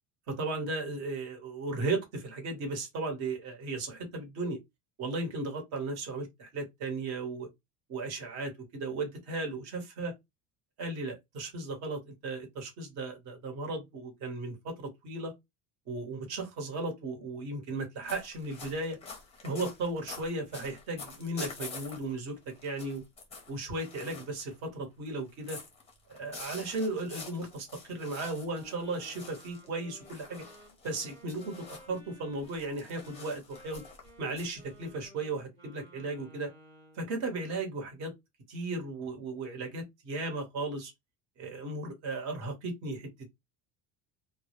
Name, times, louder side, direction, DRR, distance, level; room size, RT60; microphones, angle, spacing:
voice 1, 0.3-4.6 5.0-7.5 7.9-10.1 10.8-15.3 15.9-19.0 19.4-22.4 22.6-23.0 23.5-25.6 26.1-30.4 30.8-33.8 34.2-36.5 37.0-38.1 38.5-40.9 41.4-43.1, right 2 dB, 45° right, 1.0 m, -36 dB
sound 1, 18.0-24.7 25.1-32.0 32.4-35.0, left 4 dB, 15° left, 0.6 m, -47 dB
Wind instrument woodwind instrument, 28.5-37.1, right 1 dB, 15° right, 0.9 m, -56 dB
2.1 x 2.1 x 2.8 m
cardioid pair, 160°, 37 cm